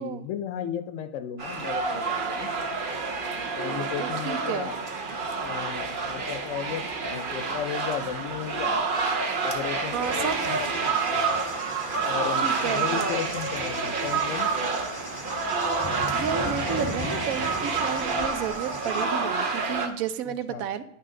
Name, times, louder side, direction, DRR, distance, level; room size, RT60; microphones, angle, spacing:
voice 1, 0.0-2.5 3.3-4.8 5.4-8.8 9.4-11.0 12.0-14.5 20.5-20.6, left 9 dB, 70° left, 11 dB, 0.9 m, -34 dB
sound 1, 1.4-19.9, right 4 dB, 45° right, 1.0 m, -28 dB
voice 2, 3.7-4.7 9.9-10.4 12.4-13.3 16.1-20.8, right 8 dB, 90° right, 12 dB, 1.1 m, -32 dB
Cricket / Thunder, 10.0-19.0, left 3 dB, 35° left, 0.3 m, -40 dB
10.0 x 5.6 x 3.7 m, 0.78 s
omnidirectional pair, 1.4 m